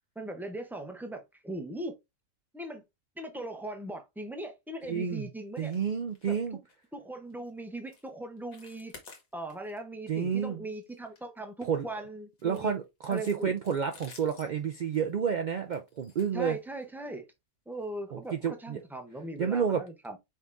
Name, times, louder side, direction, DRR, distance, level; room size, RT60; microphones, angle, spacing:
voice 1, 0.2-1.9 2.5-2.8 3.2-5.7 6.3-6.4 6.9-8.9 9.3-12.7 13.1-13.5 16.3-17.2 17.7-20.2, right 1 dB, 5° right, 0.3 m, -39 dB
voice 2, 4.9-5.3 5.6-6.6 10.1-10.6 11.6-11.9 12.4-16.6 18.1-18.8 19.4-19.8, right 7 dB, 85° right, 0.4 m, -30 dB
sound 1, 5.6-5.8 6.1-6.4 6.7-6.9 7.3-7.5 7.9-8.1 8.4-9.8 10.1-10.3 10.7-11.8 12.4-17.0 17.7-17.9 18.2-18.3 18.8-18.9, left 5 dB, 85° left, 1.7 m, -54 dB
5.2 x 3.5 x 2.5 m
omnidirectional pair, 1.4 m